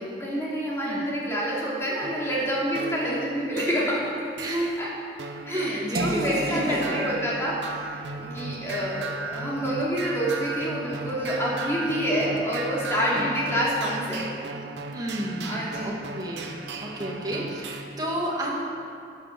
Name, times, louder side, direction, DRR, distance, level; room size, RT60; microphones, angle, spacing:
voice 1, 0.0-4.2 4.8-4.9 5.5-14.3 15.4-16.0, equal, 15° left, -6 dB, 2.9 m, -28 dB
sound 1, 2.0-17.8, right 3 dB, 85° right, 1.0 m, -37 dB
voice 2, 4.4-4.8 5.5-7.1 13.1-13.4 14.9-16.5 16.8-18.6, right 1 dB, 20° right, -3 dB, 2.1 m, -31 dB
sound 2, 5.9-11.9, right 3 dB, 55° right, 0.7 m, -37 dB
11.5 x 9.5 x 7.1 m, 2.4 s
head